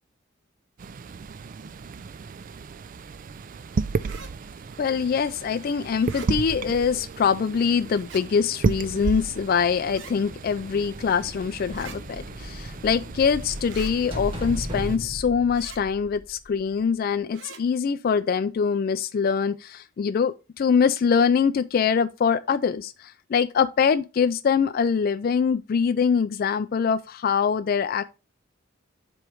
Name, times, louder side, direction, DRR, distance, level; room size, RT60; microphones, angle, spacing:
sound 1, 0.8-15.0, right 4 dB, 40° right, 0.3 m, -34 dB
sound 2, 4.0-4.3 6.0-6.3 7.9-8.2 9.9-10.1 11.7-12.0 13.7-13.9 15.5-15.8 17.3-17.6, right 5 dB, 65° right, 1.0 m, -43 dB
voice 1, 4.8-28.0, left 6 dB, 45° left, 0.3 m, -24 dB
sound 3, 10.0-16.7, equal, 25° right, 1.5 m, -37 dB
7.7 x 3.1 x 4.6 m
head